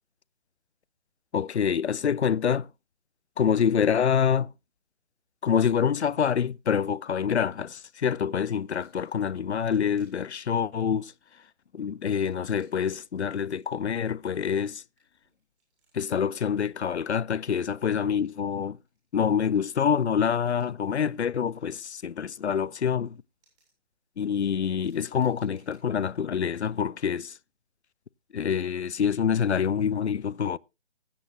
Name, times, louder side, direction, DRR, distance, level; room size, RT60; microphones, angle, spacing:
voice 1, 1.3-2.7 3.4-4.5 5.4-11.1 11.7-14.8 15.9-18.8 19.1-23.2 24.2-27.4 28.3-30.6, left 7 dB, 80° left, 0.5 m, -26 dB
sound 1, 7.5-8.1 8.4-25.8, right 3 dB, 30° right, 7.1 m, -72 dB
19.5 x 8.4 x 2.7 m
figure-of-eight pair, 145°, 33 cm